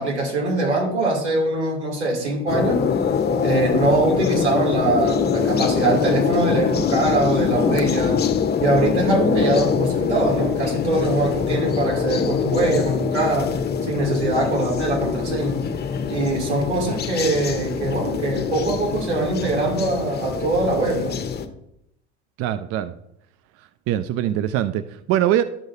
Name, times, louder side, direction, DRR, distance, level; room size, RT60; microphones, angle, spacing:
voice 1, 0.0-2.8 3.4-8.2 8.6-13.6 13.9-15.6 16.1-21.2, right 2 dB, 85° right, -2 dB, 2.8 m, -22 dB
sound 1, 2.5-21.5, left 6 dB, 30° left, 0.9 m, -23 dB
voice 2, 22.4-22.9 23.9-25.4, right 11 dB, 45° right, 12 dB, 0.5 m, -22 dB
12.0 x 6.4 x 2.7 m, 0.78 s
hypercardioid pair, 70°, 33 cm